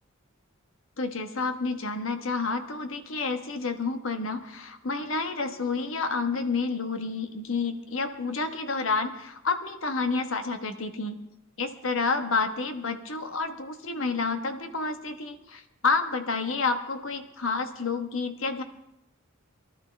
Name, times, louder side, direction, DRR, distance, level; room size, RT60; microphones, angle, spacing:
voice 1, 1.0-11.2 11.6-18.6, left 4 dB, 75° left, 7 dB, 1.2 m, -29 dB
23.5 x 12.5 x 3.4 m, 0.89 s
head